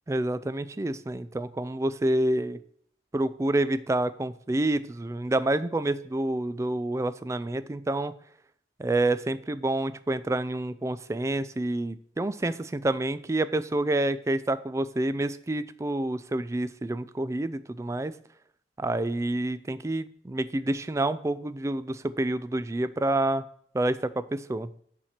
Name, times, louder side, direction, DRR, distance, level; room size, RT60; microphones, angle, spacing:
voice 1, 0.1-2.6 3.1-8.2 8.8-18.1 18.8-23.4 23.7-24.7, right 1 dB, 15° right, 14 dB, 0.3 m, -28 dB
7.2 x 4.3 x 6.5 m, 0.64 s
head